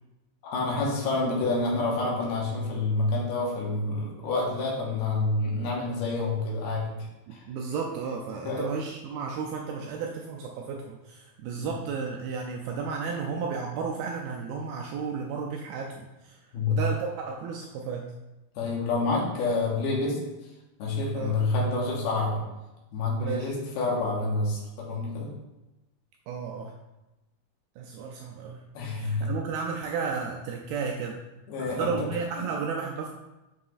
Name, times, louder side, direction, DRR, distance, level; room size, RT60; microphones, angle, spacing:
voice 1, 0.4-6.9 7.3-7.5 8.5-8.8 11.6-11.7 16.5-16.8 18.6-20.2 20.8-22.4 22.9-25.3 28.7-29.3 31.5-32.1 32.4-32.5, left 3 dB, 75° left, -3 dB, 3.1 m, -28 dB
voice 2, 7.3-16.4 16.7-18.1 21.1-21.4 23.2-23.5 26.3-26.8 27.8-28.7 28.9-31.2 31.6-33.1, right 5 dB, 85° right, 1 dB, 2.2 m, -33 dB
7.5 x 5.4 x 2.5 m, 1.0 s
omnidirectional pair, 4.7 m